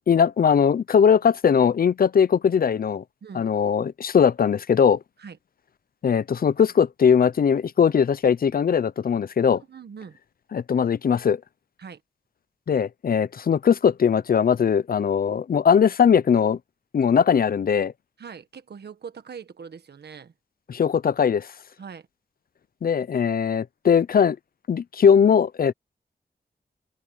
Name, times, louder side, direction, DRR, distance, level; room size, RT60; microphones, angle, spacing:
voice 1, 0.1-3.0 3.3-5.0 6.0-9.6 10.5-11.4 12.7-16.6 16.9-17.9 20.7-21.5 22.8-24.4 24.7-25.7, left 7 dB, 60° left, 0.6 m, -20 dB
voice 2, 9.5-10.2 11.8-12.0 18.2-20.3 21.8-22.1, right 6 dB, 80° right, 1.5 m, -41 dB
wide cardioid pair, 120°, 17 cm